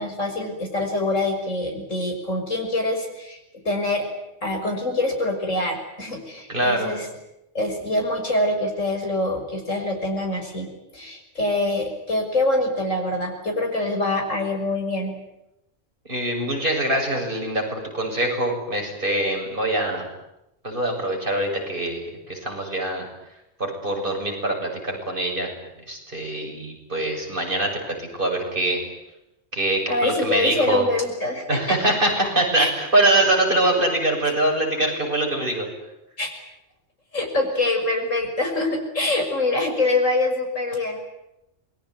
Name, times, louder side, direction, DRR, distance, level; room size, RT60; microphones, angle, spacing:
voice 1, 0.0-3.4 3.6-4.1 4.4-7.1 7.5-15.2 29.9-31.8 32.6-32.7 34.2-34.3 36.2-36.3 37.1-41.0, left 2 dB, 80° left, 2 dB, 6.5 m, -25 dB
voice 2, 6.5-6.9 16.1-20.0 20.6-23.1 23.6-28.8 29.5-30.8 31.5-35.7, right 1 dB, 40° right, 1 dB, 7.7 m, -24 dB
27.5 x 21.5 x 9.6 m, 0.88 s
omnidirectional pair, 1.3 m